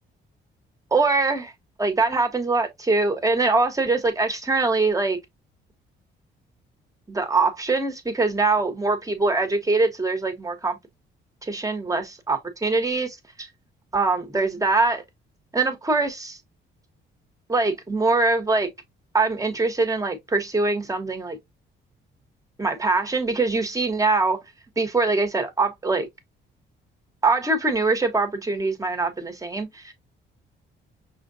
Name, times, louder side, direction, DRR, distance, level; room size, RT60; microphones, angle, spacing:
voice 1, 0.9-1.5 1.8-5.2 7.1-10.8 11.4-13.5 13.9-15.0 15.5-16.4 17.5-18.7 19.1-21.4 22.6-24.4 24.8-26.1 27.2-29.9, right 3 dB, 15° right, 1.3 m, -23 dB
5.9 x 2.5 x 2.7 m
cardioid pair, 90°, 20 cm